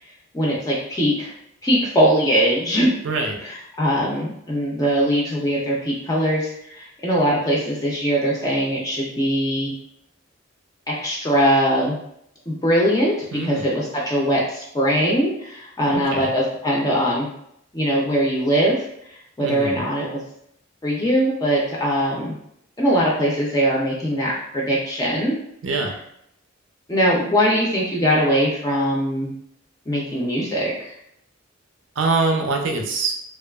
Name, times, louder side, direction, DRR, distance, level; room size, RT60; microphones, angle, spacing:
voice 1, 0.3-1.3 1.6-2.9 3.8-9.7 10.9-12.0 12.5-13.1 13.4-17.3 17.7-18.8 19.1-20.2 20.8-22.3 22.8-25.3 26.9-29.3 29.9-30.9, equal, 20° left, -4 dB, 0.4 m, -21 dB
voice 2, 3.0-3.4 13.3-13.7 15.9-16.3 19.4-19.8 25.6-26.0 32.0-33.1, right 3 dB, 65° right, 3 dB, 0.5 m, -24 dB
2.9 x 2.2 x 2.2 m, 0.74 s
head